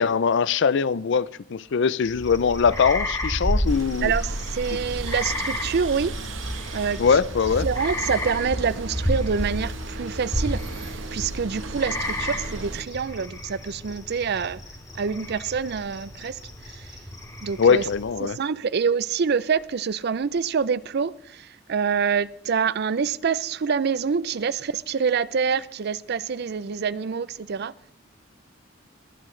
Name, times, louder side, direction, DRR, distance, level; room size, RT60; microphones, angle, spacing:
voice 1, 0.0-4.1 7.0-7.7 17.6-18.4, left 6 dB, 65° left, 0.5 m, -21 dB
sound 1, 2.0-18.2, left 1 dB, 20° left, 2.1 m, -31 dB
sound 2, 3.7-12.8, right 3 dB, 85° right, 1.1 m, -37 dB
voice 2, 4.0-6.1 6.7-7.0 7.6-14.6 14.9-16.4 16.8-16.9 17.4-17.8 18.2-27.7, right 6 dB, 55° right, 0.5 m, -26 dB
23.0 x 11.5 x 3.2 m
head